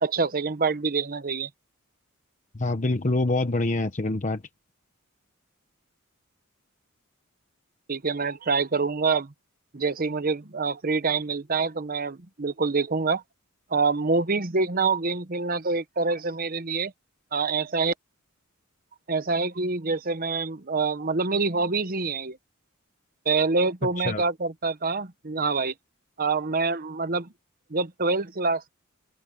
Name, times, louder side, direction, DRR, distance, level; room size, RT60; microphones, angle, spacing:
voice 1, 0.0-1.5 7.9-9.3 9.7-13.2 13.7-16.9 17.3-17.9 19.1-22.4 23.2-25.7 26.2-27.3 27.7-28.7, right 4 dB, 45° right, 1.0 m, -26 dB
voice 2, 2.5-4.4 24.0-24.2, left 2 dB, 35° left, 1.0 m, -25 dB
head